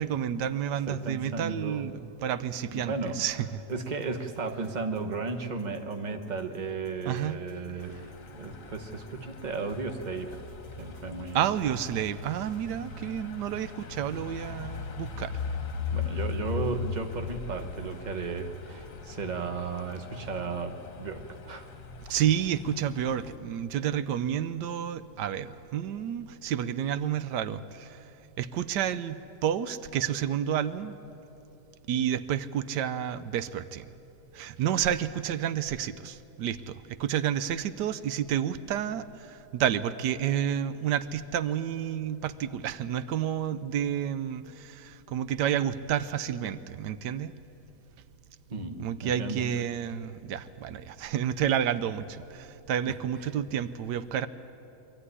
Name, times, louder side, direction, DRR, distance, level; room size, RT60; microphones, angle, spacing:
voice 1, 0.0-3.4 7.1-7.4 11.3-15.3 22.1-28.0 28.4-30.9 31.9-33.9 34.3-47.3 48.8-54.3, right 9 dB, 85° right, 14 dB, 1.3 m, -30 dB
voice 2, 0.9-1.8 2.7-3.2 3.7-8.0 8.3-10.4 10.8-11.5 15.9-21.6 48.5-49.4 52.9-53.3, right 4 dB, 30° right, 6 dB, 1.2 m, -35 dB
sound 1, 2.7-19.0, right 1 dB, 60° right, 4.2 m, -55 dB
sound 2, 7.8-23.3, left 5 dB, 55° left, 1.5 m, -39 dB
23.5 x 14.0 x 9.8 m, 2.9 s
omnidirectional pair, 1.8 m